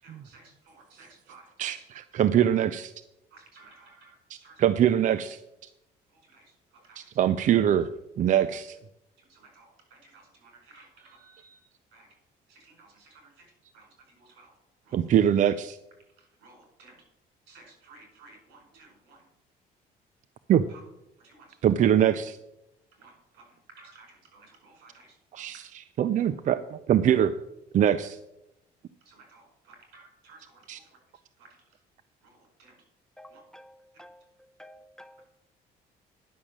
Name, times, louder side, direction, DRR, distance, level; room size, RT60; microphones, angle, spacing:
voice 1, 0.0-1.8 3.3-4.6 6.1-7.5 8.5-8.6 9.2-12.1 12.5-13.5 13.7-14.6 14.8-15.1 16.2-17.0 17.5-19.2 20.7-20.8 21.2-21.6 22.9-25.6 26.2-26.3 27.1-27.2 29.0-31.0 31.4-31.8 32.2-32.8 33.3-33.4, right 3 dB, 85° right, 4.8 m, -56 dB
voice 2, 1.6-2.9 4.6-5.4 7.0-7.9 8.2-8.8 14.9-15.8 20.5-20.6 21.6-22.4 25.3-25.6 26.0-27.3 27.7-28.2 30.7-30.8, right 10 dB, 50° right, 0.5 m, -23 dB
voice 3, 33.2-35.3, equal, 5° left, 0.6 m, -51 dB
10.5 x 6.3 x 7.4 m
cardioid pair, 110°, 17 cm